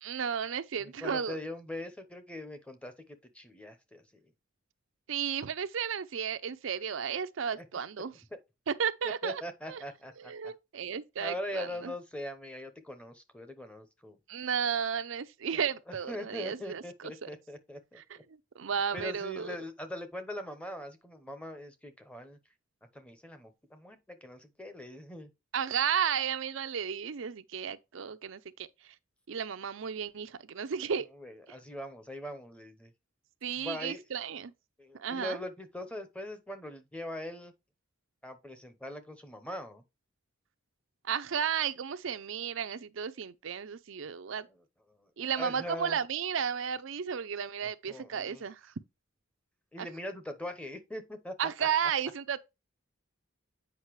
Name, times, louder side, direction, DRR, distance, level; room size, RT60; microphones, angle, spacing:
voice 1, 0.0-1.4 5.1-8.1 8.7-9.4 9.7-9.8 10.2-11.9 14.3-17.3 18.0-19.5 25.5-28.7 29.3-31.1 33.4-34.5 34.9-35.4 41.0-44.5 45.2-48.7 49.8-49.9 51.4-52.4, right 7 dB, 75° right, 0.5 m, -33 dB
voice 2, 0.8-2.9 3.3-4.0 7.6-7.7 9.2-10.5 11.2-14.2 15.5-18.0 18.9-22.4 22.9-25.3 31.1-32.9 33.5-34.3 34.8-37.5 38.2-39.8 44.5-44.6 45.0-45.1 45.3-46.0 47.6-48.4 49.7-51.3 51.6-51.7, left 1 dB, 5° left, 0.9 m, -41 dB
8.1 x 5.3 x 3.1 m
head